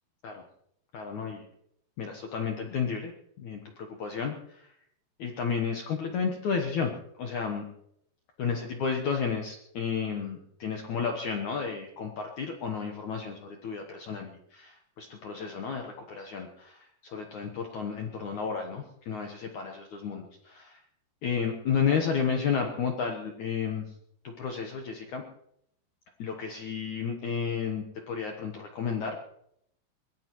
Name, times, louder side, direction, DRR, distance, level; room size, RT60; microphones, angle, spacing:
voice 1, 0.9-1.5 2.0-3.1 3.4-4.7 5.2-6.9 7.2-7.7 8.4-20.8 21.2-23.9 24.2-25.2 26.2-29.2, left 6 dB, 70° left, 2 dB, 1.8 m, -32 dB
23.0 x 19.5 x 3.1 m, 0.74 s
omnidirectional pair, 5.1 m